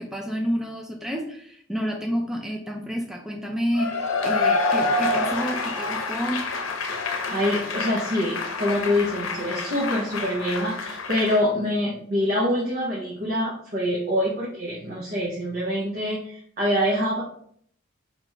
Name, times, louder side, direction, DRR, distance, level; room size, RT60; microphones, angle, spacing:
voice 1, 0.0-6.4, equal, ahead, 0 dB, 0.3 m, -29 dB
Cheering / Applause / Crowd, 3.7-11.4, left 3 dB, 85° left, 0.7 m, -27 dB
voice 2, 6.9-17.2, left 1 dB, 45° right, -6 dB, 0.7 m, -25 dB
2.9 x 2.5 x 4.3 m, 0.65 s
head